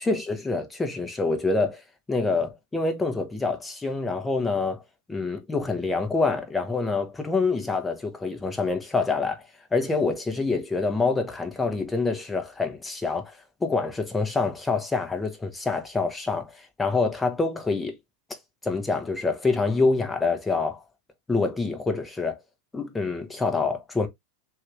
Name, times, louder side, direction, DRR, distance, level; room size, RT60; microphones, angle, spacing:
voice 1, 0.0-1.8 2.1-4.8 5.1-9.5 9.7-18.0 18.6-20.8 21.3-22.4 22.7-24.1, left 3 dB, 15° left, 0.9 m, -26 dB
2.7 x 2.5 x 3.3 m
hypercardioid pair, 90°, 0 cm